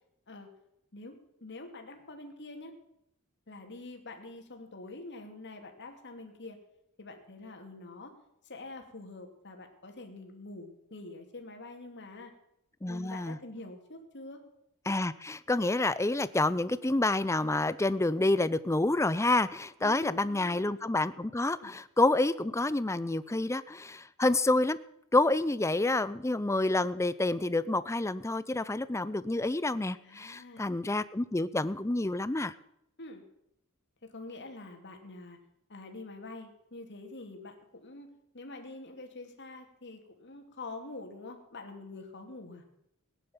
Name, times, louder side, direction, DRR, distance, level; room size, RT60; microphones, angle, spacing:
voice 1, 0.9-2.7 3.5-6.6 7.0-8.1 8.4-12.3 12.9-14.4 19.8-20.8 21.6-21.7 30.0-30.8 33.0-33.2 34.0-35.4 35.7-38.1 38.3-42.6, left 2 dB, 50° left, 4 dB, 2.7 m, -46 dB
voice 2, 12.8-13.4 14.9-24.8 25.1-32.5, left 2 dB, 15° left, 16 dB, 0.5 m, -28 dB
17.0 x 10.5 x 7.2 m, 0.78 s
head